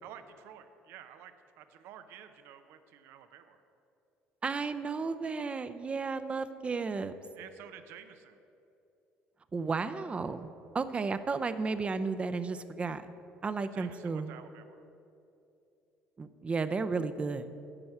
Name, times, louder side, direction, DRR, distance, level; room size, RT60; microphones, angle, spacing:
voice 1, 0.0-3.6 7.3-8.4 13.7-14.8, right 9 dB, 75° right, 10 dB, 0.6 m, -51 dB
voice 2, 4.4-7.2 9.5-10.5 10.7-13.0 13.4-14.3 16.2-17.5, right 4 dB, 30° right, 11 dB, 0.5 m, -33 dB
9.8 x 4.6 x 7.8 m, 2.8 s
supercardioid pair, 90°, 4 cm